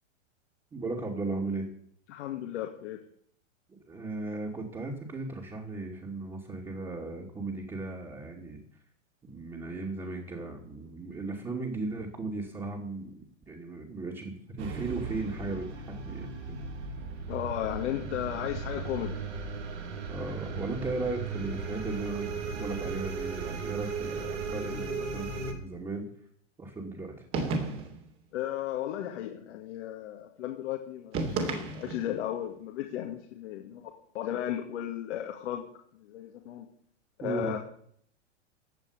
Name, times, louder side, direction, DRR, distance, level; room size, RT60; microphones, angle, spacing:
voice 1, 0.7-1.7 3.7-8.6 9.2-16.6 20.1-26.1 26.6-27.2 37.2-37.6, right 3 dB, 15° right, -2 dB, 2.7 m, -36 dB
voice 2, 2.1-3.0 17.3-19.3 28.3-35.7 36.0-36.7 37.2-37.6, left 11 dB, 65° left, 1 dB, 2.2 m, -35 dB
sound 1, 14.6-25.5, right 4 dB, 70° right, 3.2 m, -36 dB
sound 2, 27.3-28.1 31.1-32.2, right 3 dB, 35° right, 3.0 m, -32 dB
16.5 x 5.7 x 9.9 m, 0.66 s
hypercardioid pair, 130°, 37 cm